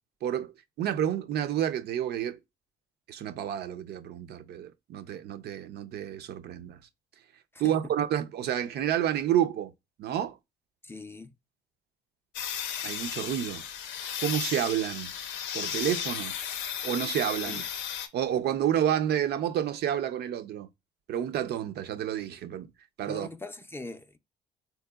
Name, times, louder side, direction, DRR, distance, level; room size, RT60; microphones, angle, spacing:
voice 1, 0.2-2.4 3.1-6.8 7.6-9.7 10.0-10.4 12.8-13.6 14.2-15.1 15.5-16.4 16.8-17.6 18.1-20.7 21.1-22.7 23.0-23.3, right 10 dB, 60° right, 0.4 m, -29 dB
voice 2, 10.8-11.3 17.4-17.6 23.1-24.2, left 2 dB, 10° left, 0.4 m, -41 dB
sound 1, 12.3-18.1, left 8 dB, 80° left, 0.6 m, -34 dB
3.5 x 2.8 x 2.3 m
supercardioid pair, 75°, 19 cm